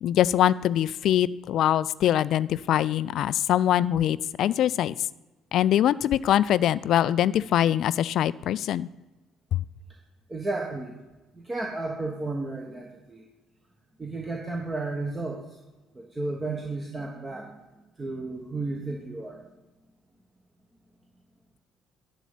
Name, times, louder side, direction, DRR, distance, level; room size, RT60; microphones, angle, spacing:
voice 1, 0.0-4.9 5.5-8.9 9.5-9.6, left 11 dB, 55° left, 18 dB, 0.3 m, -23 dB
voice 2, 10.3-11.0 11.3-13.3 14.0-15.4 15.9-17.6 18.0-19.4, right 2 dB, 20° right, 0 dB, 1.4 m, -33 dB
11.0 x 4.0 x 7.4 m, 1.1 s
figure-of-eight pair, 50°, 0 cm